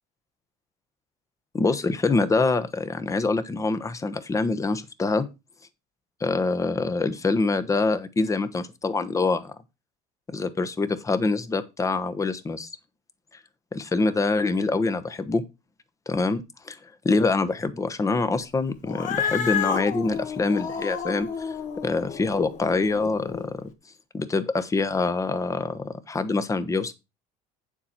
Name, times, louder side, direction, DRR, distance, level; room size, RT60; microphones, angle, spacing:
voice 1, 1.5-5.3 6.2-9.5 10.3-12.7 13.7-15.4 16.1-21.6 21.8-23.5 24.1-26.9, left 3 dB, 20° left, 1.0 m, -25 dB
Cat, 18.8-23.5, left 7 dB, 50° left, 1.6 m, -31 dB
8.7 x 7.2 x 4.3 m
cardioid pair, 115°, 17 cm